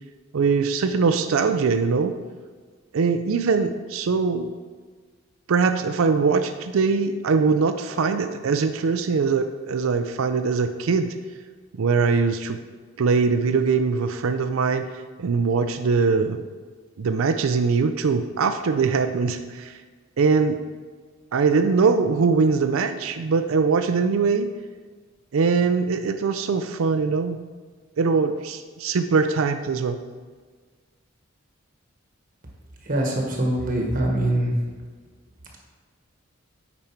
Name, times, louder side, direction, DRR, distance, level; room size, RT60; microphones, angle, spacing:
voice 1, 0.3-2.1 2.9-4.5 5.5-11.1 11.8-12.6 13.0-14.9 15.2-16.4 17.0-19.7 20.2-20.6 21.3-24.5 25.3-27.4 28.0-30.0, right 5 dB, 80° right, 8 dB, 0.4 m, -22 dB
voice 2, 32.9-34.5, right 1 dB, 40° right, 0 dB, 1.1 m, -23 dB
8.9 x 5.2 x 4.4 m, 1.5 s
head